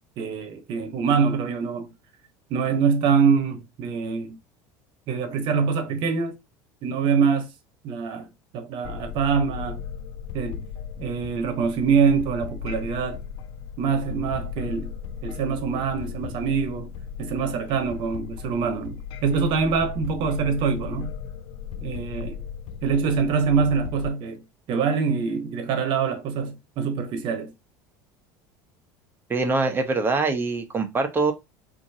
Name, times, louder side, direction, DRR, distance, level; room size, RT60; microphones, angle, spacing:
voice 1, 0.2-1.9 2.5-4.4 5.1-6.4 6.8-7.5 7.8-8.3 8.5-9.8 10.3-10.6 11.0-13.2 13.8-14.9 15.2-21.1 21.8-22.4 22.8-24.4 24.7-27.5, right 6 dB, 55° right, 1.1 m, -24 dB
sound 1, 8.8-24.1, left 7 dB, 60° left, 0.4 m, -36 dB
voice 2, 29.3-31.3, right 3 dB, 20° right, 0.9 m, -23 dB
4.3 x 2.7 x 2.8 m
supercardioid pair, 110°, 10 cm